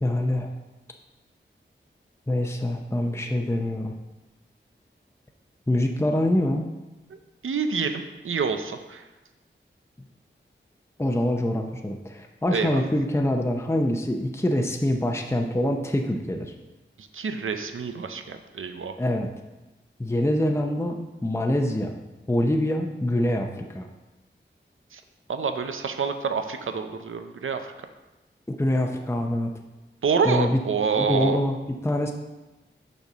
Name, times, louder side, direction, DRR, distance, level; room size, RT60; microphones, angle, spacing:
voice 1, 0.0-0.5 2.3-3.9 5.7-6.7 11.0-16.5 19.0-19.3 20.0-22.0 22.3-23.9 28.5-29.5 30.2-30.6 31.0-32.1, left 1 dB, 15° left, 3 dB, 0.7 m, -25 dB
voice 2, 7.4-9.0 12.5-12.8 17.1-19.0 24.9-25.0 25.3-27.6 30.0-31.4, right 5 dB, 85° right, 7 dB, 0.6 m, -27 dB
6.6 x 4.3 x 6.0 m, 1.1 s
wide cardioid pair, 55°, 20 cm